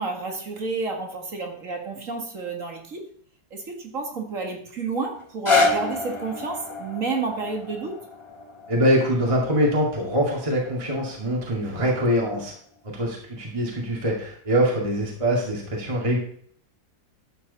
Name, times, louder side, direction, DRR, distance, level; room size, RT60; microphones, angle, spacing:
voice 1, 0.0-3.1 3.5-8.0, right 4 dB, 45° right, 3 dB, 2.2 m, -30 dB
sound 1, 5.2-11.3 11.9-12.0, left 3 dB, 20° left, 1.2 m, -28 dB
voice 2, 8.7-12.5 12.8-16.2, equal, 15° right, -2 dB, 2.1 m, -23 dB
12.5 x 7.8 x 4.0 m, 0.62 s
omnidirectional pair, 2.1 m